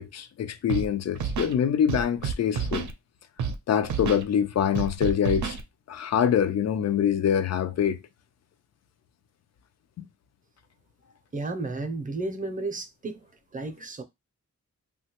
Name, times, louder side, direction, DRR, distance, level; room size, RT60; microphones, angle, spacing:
voice 1, 0.0-2.9 3.7-5.6 5.9-8.0 10.0-10.1, left 8 dB, 60° left, 0.4 m, -25 dB
Scratching (performance technique), 0.7-0.9 1.1-1.5 1.9-2.9 3.4-3.6 3.8-4.2 4.8-5.6, right 6 dB, 80° right, 0.5 m, -29 dB
voice 2, 11.3-13.2 13.5-14.0, right 3 dB, 30° right, 0.5 m, -32 dB
3.1 x 2.3 x 2.9 m
wide cardioid pair, 115°, 29 cm